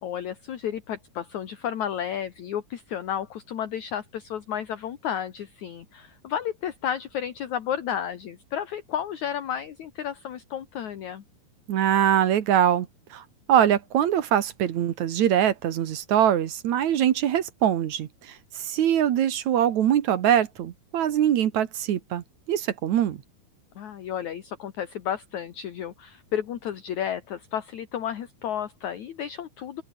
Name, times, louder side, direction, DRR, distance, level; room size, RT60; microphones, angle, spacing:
voice 1, 0.0-11.2 23.8-29.8, left 9 dB, 60° left, 2.9 m, -32 dB
voice 2, 11.7-23.2, right 10 dB, 60° right, 2.4 m, -23 dB
open air
omnidirectional pair, 4.2 m